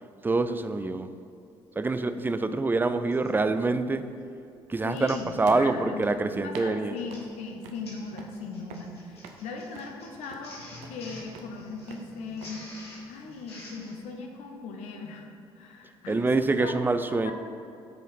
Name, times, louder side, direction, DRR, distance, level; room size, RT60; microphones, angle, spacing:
voice 1, 0.2-1.1 1.8-4.1 4.7-7.0 16.1-17.3, right 3 dB, 15° right, 10 dB, 0.4 m, -26 dB
Printer, 3.1-3.4 4.0-4.2 4.5-4.6 5.1-5.3 5.7-5.9 6.7-14.0, left 1 dB, 85° left, 1.2 m, -48 dB
voice 2, 4.8-12.6 13.1-15.3 15.6-16.7 17.1-17.3, left 4 dB, 60° left, 3 dB, 0.8 m, -39 dB
sound 1, 4.9-12.5, right 5 dB, 65° right, 0.6 m, -48 dB
6.1 x 4.9 x 4.2 m, 2.6 s
figure-of-eight pair, 45°, 13 cm